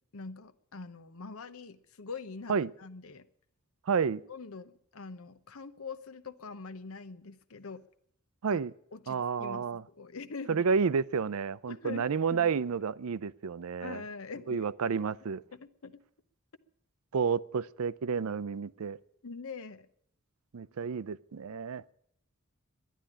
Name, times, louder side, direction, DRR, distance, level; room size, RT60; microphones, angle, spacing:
voice 1, 0.1-3.3 4.3-7.8 8.5-8.6 8.9-10.7 11.7-12.5 13.8-15.0 15.5-16.0 19.2-19.9, left 4 dB, 75° left, 0.8 m, -44 dB
voice 2, 3.9-4.2 8.4-8.7 9.1-9.8 10.5-14.0 14.5-15.4 17.1-19.0 20.5-21.8, right 6 dB, 80° right, 0.5 m, -30 dB
11.5 x 10.0 x 9.8 m
head